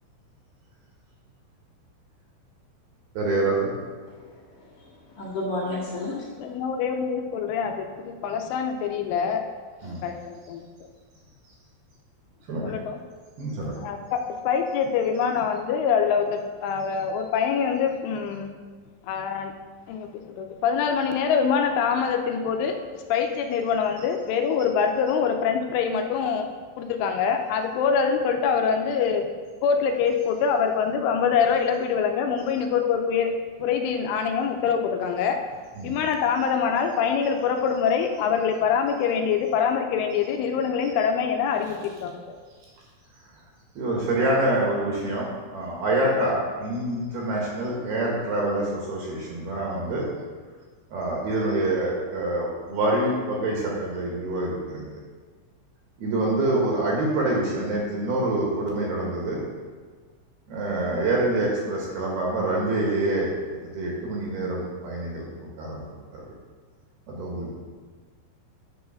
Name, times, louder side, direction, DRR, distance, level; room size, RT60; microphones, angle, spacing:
voice 1, 3.1-3.7 9.8-10.0 12.5-12.7 13.4-13.8 32.5-32.6 35.7-36.0 43.8-45.3 45.5-50.0 50.9-54.9 56.0-59.4 60.5-63.3 63.7-65.3 65.6-65.8 66.1-66.3 67.1-67.5, right 2 dB, 65° right, -3 dB, 3.0 m, -26 dB
voice 2, 4.1-6.5, left 2 dB, 50° left, -7 dB, 2.7 m, -33 dB
voice 3, 6.4-9.4 9.8-10.6 12.6-13.0 13.8-18.5 19.1-19.5 19.9-22.8 23.1-26.5 26.8-29.3 29.6-33.3 33.6-35.4 35.8-42.2, left 6 dB, 85° left, 4 dB, 3.1 m, -24 dB
10.5 x 4.8 x 6.4 m, 1.5 s
omnidirectional pair, 5.6 m